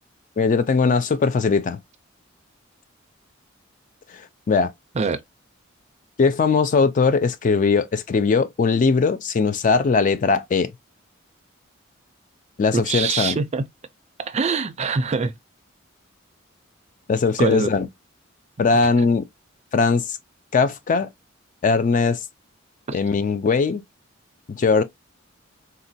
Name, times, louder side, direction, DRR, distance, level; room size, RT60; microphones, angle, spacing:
voice 1, 0.4-1.8 4.1-4.7 6.2-10.7 12.6-13.4 17.1-17.9 18.6-19.2 19.7-20.2 20.5-21.1 21.6-22.2 22.9-23.8 24.5-24.8, left 4 dB, 40° left, 0.4 m, -20 dB
voice 2, 12.7-13.6 14.2-15.3 17.4-17.7, right 4 dB, 35° right, 0.4 m, -23 dB
3.9 x 2.2 x 2.6 m
head